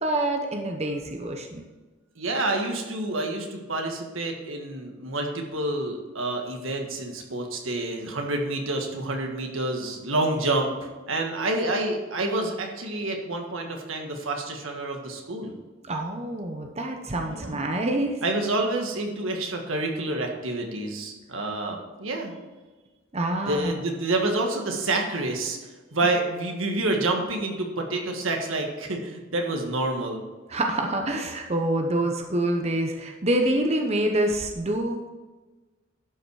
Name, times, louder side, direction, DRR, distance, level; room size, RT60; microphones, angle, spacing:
voice 1, 0.0-1.6 15.9-18.2 23.1-23.7 30.5-35.1, right 1 dB, 35° right, 3 dB, 0.8 m, -26 dB
voice 2, 2.2-15.6 17.3-17.6 18.2-22.3 23.4-25.6 25.9-30.2, right 2 dB, 85° right, 2 dB, 1.6 m, -28 dB
11.5 x 5.8 x 4.8 m, 1.2 s
head